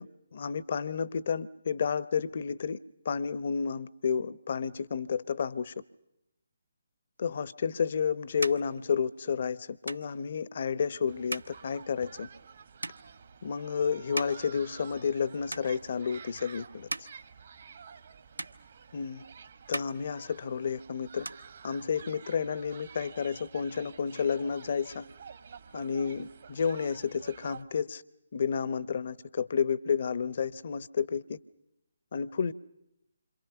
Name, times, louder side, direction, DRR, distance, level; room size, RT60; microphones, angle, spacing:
voice 1, 0.0-2.8 3.0-5.7 7.2-12.3 13.4-17.1 18.9-19.2 19.7-21.3 21.6-25.0 25.7-28.0 28.3-31.4 32.1-32.5, left 6 dB, 45° left, 17 dB, 0.8 m, -31 dB
sound 1, 7.5-15.2 15.5-16.2 16.6-18.1 18.4-19.3 19.6-20.8 21.0-22.2, right 1 dB, 80° right, 1.0 m, -42 dB
sound 2, 11.1-27.6, right 6 dB, 45° right, 1.4 m, -50 dB
28.0 x 26.5 x 5.9 m, 0.87 s
figure-of-eight pair, 145°, 0 cm